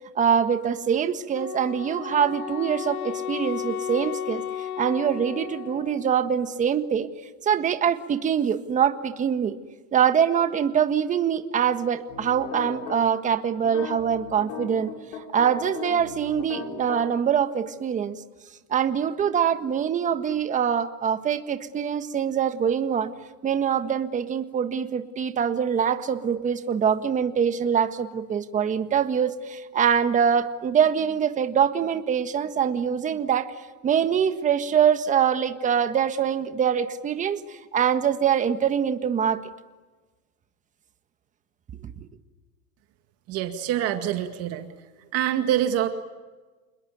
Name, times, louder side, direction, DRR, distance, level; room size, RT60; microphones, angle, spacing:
voice 1, 0.1-7.1 7.4-9.5 9.9-14.9 15.3-18.2 18.7-23.1 23.4-33.5 33.8-39.4 41.8-41.9, right 8 dB, 15° right, 9 dB, 1.6 m, -24 dB
Wind instrument woodwind instrument, 1.3-6.1, left 10 dB, 90° left, 1.7 m, -34 dB
sound 1, 12.1-13.0 13.6-17.0, left 6 dB, 60° left, 7.0 m, -37 dB
voice 2, 43.3-44.7 45.1-45.9, right 11 dB, 35° right, 7 dB, 2.0 m, -25 dB
29.0 x 21.0 x 9.4 m, 1.3 s
supercardioid pair, 150°, 42 cm